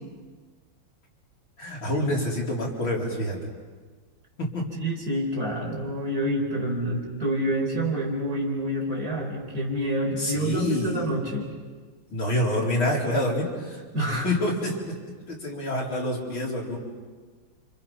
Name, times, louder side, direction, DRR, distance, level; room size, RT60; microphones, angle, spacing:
voice 1, 1.6-3.4 4.4-4.7 10.2-11.1 12.1-13.8 14.1-14.9 15.3-16.8, left 1 dB, 90° left, -3 dB, 5.1 m, -27 dB
voice 2, 4.8-11.5 13.9-14.3, right 1 dB, 45° right, -1 dB, 5.0 m, -28 dB
30.0 x 27.0 x 5.8 m, 1.4 s
omnidirectional pair, 2.1 m